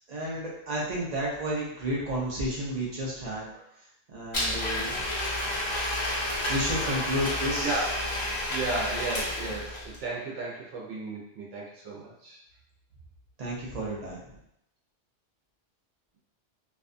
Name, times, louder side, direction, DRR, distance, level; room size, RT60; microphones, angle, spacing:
voice 1, 0.1-3.5 4.1-5.0 6.5-7.8 13.4-14.2, equal, 50° right, -4 dB, 0.5 m, -31 dB
Domestic sounds home sounds, 4.3-10.0, left 1 dB, 35° left, 0.5 m, -30 dB
voice 2, 7.6-8.1 8.4-12.4, right 3 dB, 75° right, -4 dB, 0.9 m, -34 dB
2.5 x 2.2 x 2.5 m, 0.78 s
omnidirectional pair, 1.3 m